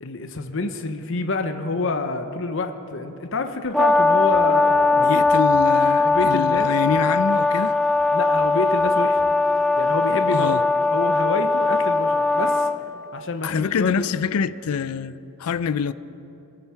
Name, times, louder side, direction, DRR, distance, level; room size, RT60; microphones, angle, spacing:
voice 1, 0.0-5.1 6.0-6.7 8.1-9.2 9.8-10.6 10.9-12.7 13.1-14.1, left 3 dB, 60° left, 0.8 m, -27 dB
Brass instrument, 3.7-12.8, left 3 dB, ahead, 0.3 m, -19 dB
voice 2, 5.0-7.8 10.3-10.6 13.4-15.9, left 6 dB, 80° left, 0.4 m, -25 dB
22.0 x 9.1 x 5.7 m
head